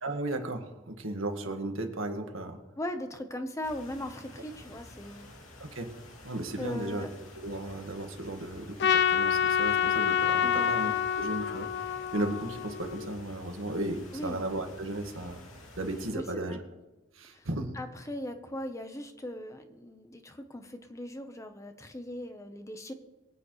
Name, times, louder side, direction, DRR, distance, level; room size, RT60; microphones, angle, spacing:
voice 1, 0.0-2.6 5.6-5.9 6.2-7.1 7.3-10.9 11.2-11.7 12.1-15.4 15.8-16.6 17.1-17.7, right 1 dB, 80° right, 4 dB, 1.7 m, -35 dB
voice 2, 2.8-5.3 6.6-7.1 10.4-10.7 14.1-14.4 16.1-16.6 17.3-17.5 17.7-22.9, left 1 dB, 15° left, 7 dB, 0.9 m, -39 dB
sound 1, 3.6-16.1, left 1 dB, 85° left, 2.6 m, -50 dB
Trumpet, 8.8-13.2, left 8 dB, 55° left, 0.4 m, -27 dB
23.5 x 9.1 x 3.2 m, 1.1 s
head